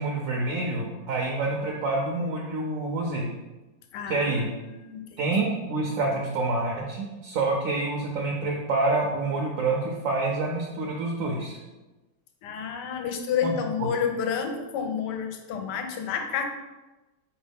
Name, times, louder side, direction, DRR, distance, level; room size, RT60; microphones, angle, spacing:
voice 1, 0.0-3.3 4.1-4.5 5.2-11.6 13.4-13.5, right 2 dB, 70° right, 0 dB, 0.8 m, -27 dB
voice 2, 3.9-5.2 12.4-16.4, left 7 dB, 75° left, 6 dB, 1.1 m, -30 dB
4.5 x 3.0 x 3.4 m, 1.1 s
omnidirectional pair, 1.9 m